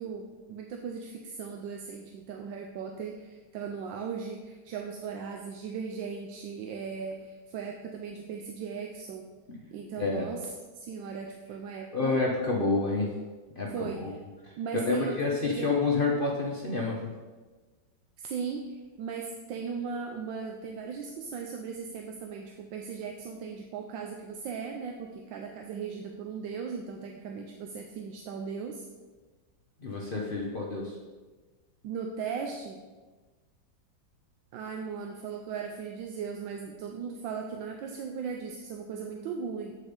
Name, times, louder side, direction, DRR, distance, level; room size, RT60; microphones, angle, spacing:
voice 1, 0.0-9.3 9.7-10.4 10.7-12.2 13.7-14.1 14.6-15.7 18.2-28.9 31.8-32.8 34.5-39.8, right 6 dB, 75° right, 2 dB, 1.3 m, -37 dB
voice 2, 11.9-13.1 13.6-14.1 14.7-17.1 29.8-30.9, left 3 dB, 50° left, -3 dB, 0.6 m, -28 dB
8.2 x 4.4 x 5.0 m, 1.3 s
omnidirectional pair, 2.1 m